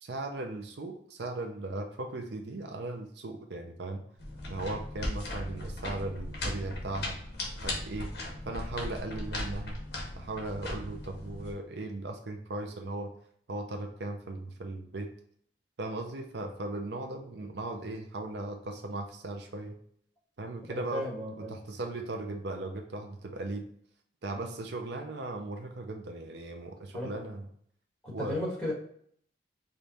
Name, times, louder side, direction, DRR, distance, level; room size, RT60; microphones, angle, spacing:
voice 1, 0.0-4.0 4.5-7.2 7.6-8.1 8.5-9.8 10.2-13.1 13.5-15.1 15.8-19.8 20.4-21.1 21.4-23.7 24.2-27.5 28.1-28.4, right 2 dB, 65° right, 4 dB, 0.5 m, -37 dB
sound 1, 4.2-11.5, left 1 dB, 60° left, 1.3 m, -37 dB
voice 2, 20.7-21.6 26.9-27.1 28.0-28.7, left 1 dB, 5° left, -5 dB, 1.4 m, -35 dB
5.0 x 2.3 x 4.0 m, 0.65 s
head